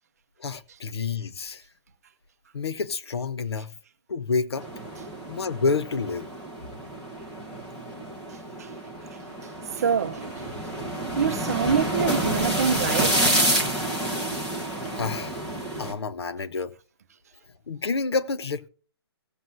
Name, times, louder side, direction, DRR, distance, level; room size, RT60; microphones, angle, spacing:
voice 1, 0.4-1.6 2.5-3.7 4.1-4.7 5.3-6.3 15.0-15.4 15.8-16.7 17.7-18.7, left 4 dB, 75° left, 1.0 m, -28 dB
sound 1, 4.6-15.9, right 1 dB, 5° left, 1.0 m, -29 dB
voice 2, 9.8-10.3 11.1-13.3, right 7 dB, 35° right, 0.7 m, -25 dB
17.5 x 7.8 x 2.7 m
hypercardioid pair, 175°, 14 cm